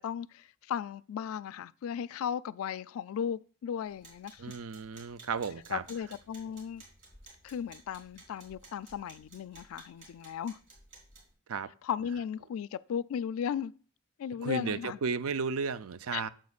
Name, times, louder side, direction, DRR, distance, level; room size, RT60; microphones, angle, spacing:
voice 1, 0.0-4.5 5.7-6.8 7.4-10.6 11.8-13.7 14.2-15.0 16.1-16.3, left 8 dB, 80° left, 0.3 m, -36 dB
sound 1, 3.8-11.3, right 2 dB, 60° right, 3.4 m, -56 dB
voice 2, 4.4-5.8 11.5-11.7 14.4-16.3, right 5 dB, 85° right, 0.5 m, -34 dB
9.4 x 7.6 x 2.4 m
head